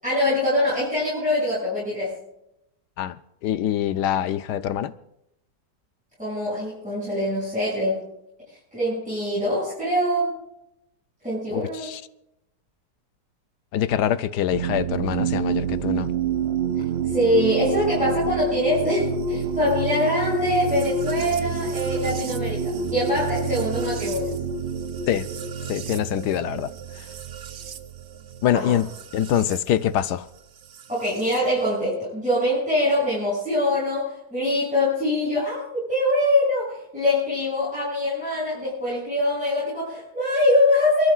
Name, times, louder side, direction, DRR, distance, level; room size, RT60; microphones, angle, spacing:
voice 1, 0.0-2.2 6.2-8.1 8.7-10.4 11.2-11.9 17.0-24.3 28.5-28.8 30.9-41.1, left 1 dB, 5° right, 7.1 m, -23 dB
voice 2, 3.4-4.9 11.5-12.0 13.7-16.1 25.1-25.3 25.7-27.1 28.4-30.3, left 10 dB, 75° left, 1.2 m, -25 dB
sound 1, 14.5-29.6 30.7-31.4, right 4 dB, 55° right, 0.7 m, -28 dB
29.0 x 13.0 x 2.5 m
omnidirectional pair, 1.9 m